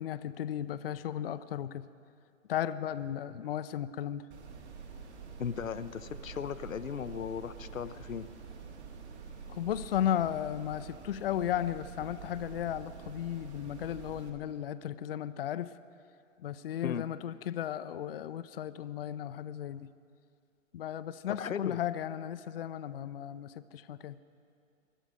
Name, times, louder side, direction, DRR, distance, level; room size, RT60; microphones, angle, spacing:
voice 1, 0.0-1.9 2.5-4.3 9.5-15.7 16.4-19.9 20.7-24.2, left 10 dB, 50° left, 14 dB, 0.5 m, -35 dB
sound 1, 4.3-14.3, right 6 dB, 55° right, 2.3 m, -47 dB
voice 2, 5.4-8.3 16.8-17.1 21.3-21.8, left 7 dB, 90° left, 12 dB, 0.7 m, -37 dB
21.0 x 12.5 x 5.2 m, 2.4 s
figure-of-eight pair, 135°, 39 cm